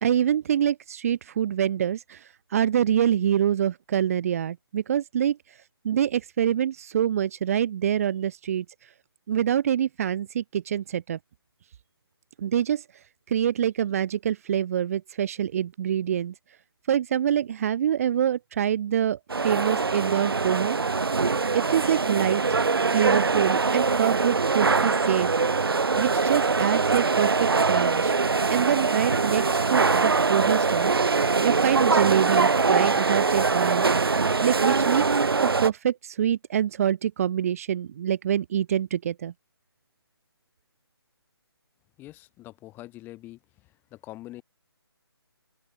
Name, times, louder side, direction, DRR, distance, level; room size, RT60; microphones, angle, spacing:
voice 1, 0.0-5.6 5.8-8.9 9.3-11.2 12.4-12.8 13.3-16.3 16.9-19.2 19.4-21.0 21.5-22.4 22.9-25.3 26.0-27.4 27.7-28.1 28.5-33.9 34.4-35.1 35.4-39.3, right 9 dB, 35° right, 1.4 m, -25 dB
sound 1, 19.3-35.7, right 4 dB, 65° right, 5.0 m, -23 dB
voice 2, 42.0-44.4, left 16 dB, 15° left, 8.0 m, -44 dB
open air
figure-of-eight pair, 145°, 13 cm